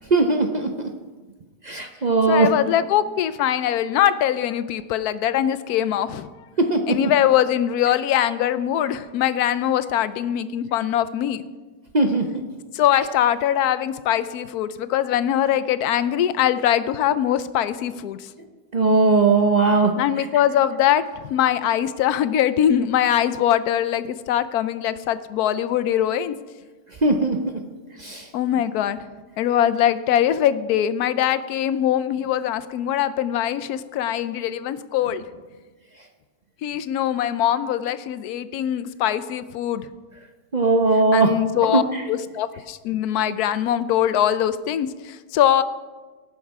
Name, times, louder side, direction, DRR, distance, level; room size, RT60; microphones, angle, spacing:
voice 1, 0.1-0.9 1.6-2.5 6.6-7.1 11.9-12.4 18.7-20.3 27.0-27.6 28.0-28.3 40.5-42.0, right 3 dB, 50° right, 4 dB, 0.5 m, -19 dB
voice 2, 2.3-6.3 6.9-11.4 12.7-18.2 20.0-26.3 28.3-29.0 29.4-35.2 36.6-39.9 41.1-41.8 42.1-45.6, left 11 dB, 75° left, 14 dB, 1.0 m, -22 dB
18.0 x 6.5 x 4.7 m, 1.3 s
omnidirectional pair, 1.8 m